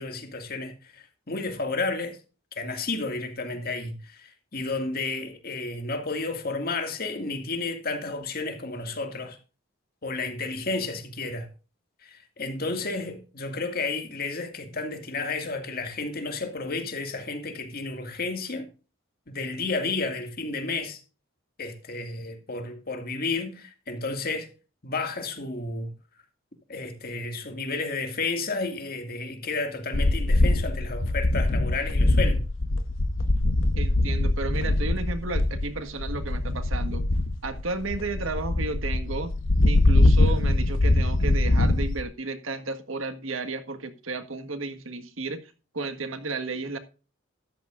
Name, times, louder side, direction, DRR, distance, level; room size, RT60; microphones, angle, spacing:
voice 1, 0.0-2.2 2.6-9.4 10.0-11.5 12.0-18.7 19.3-21.0 21.6-24.5 24.8-25.9 26.7-32.5, left 3 dB, 50° left, 2.1 m, -32 dB
sound 1, 29.9-42.0, left 2 dB, 75° left, 1.0 m, -23 dB
voice 2, 33.8-37.0 37.4-39.3 39.7-46.8, right 3 dB, 85° right, 1.6 m, -33 dB
13.5 x 11.0 x 2.5 m
head